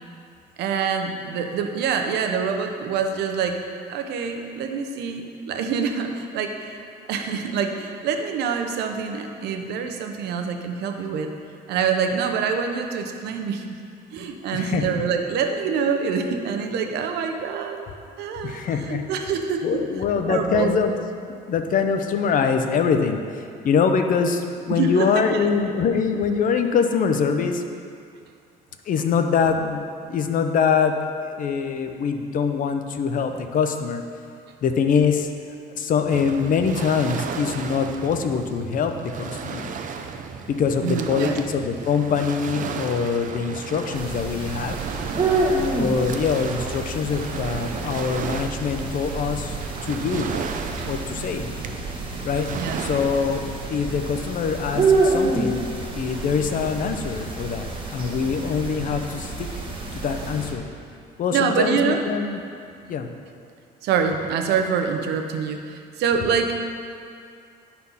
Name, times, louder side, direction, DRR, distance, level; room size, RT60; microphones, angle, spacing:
voice 1, 0.6-3.6 3.9-6.8 7.1-11.3 11.7-13.8 14.1-17.9 18.2-19.8 20.3-20.8 24.7-25.5 40.8-41.4 52.5-52.8 56.1-56.2 61.3-62.0 63.8-66.6, right 6 dB, 80° right, 5 dB, 0.8 m, -25 dB
voice 2, 14.5-14.9 18.4-19.0 19.6-20.9 21.5-27.6 28.9-31.0 31.3-34.0 34.6-35.3 35.8-39.7 40.5-44.8 45.7-49.6 49.8-50.3 50.9-51.5 52.2-52.5 52.8-53.4 53.7-55.6 55.9-59.5 59.9-60.7 61.2-62.4 62.9-63.1, left 6 dB, 55° left, 6 dB, 0.7 m, -24 dB
Waves surf, 36.1-53.4, right 6 dB, 50° right, 0.6 m, -34 dB
sound 1, 43.9-60.5, right 3 dB, 30° right, 1.3 m, -28 dB
11.0 x 4.3 x 5.6 m, 2.3 s
cardioid pair, 110°, 17 cm